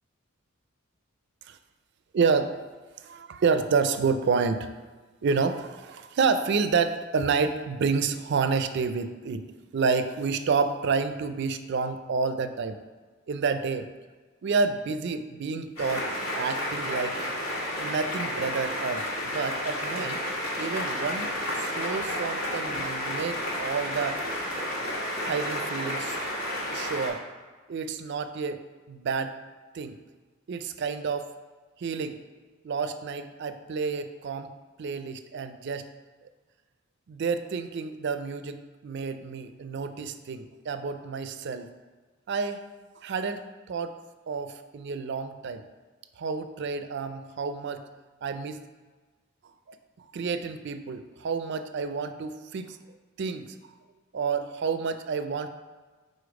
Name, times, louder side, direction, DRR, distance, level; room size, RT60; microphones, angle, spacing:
voice 1, 2.1-2.6 3.0-4.9 5.2-9.5 9.7-12.8 13.3-13.9 14.4-16.1 16.3-17.2 17.8-20.2 20.6-21.3 21.6-24.2 25.2-26.2 26.7-27.2 27.7-28.6 28.9-29.4 29.7-30.0 30.5-31.3 31.8-32.2 32.6-34.5 34.8-35.9 37.1-41.7 42.3-42.6 43.0-44.0 44.3-45.6 46.2-47.8 48.2-48.6 49.7-49.8 50.1-52.8 53.2-53.5 54.1-55.5, right 5 dB, 55° right, 10 dB, 0.4 m, -29 dB
sound 1, 15.8-27.1, left 1 dB, 85° left, 1.6 m, -31 dB
5.1 x 4.1 x 4.8 m, 1.4 s
head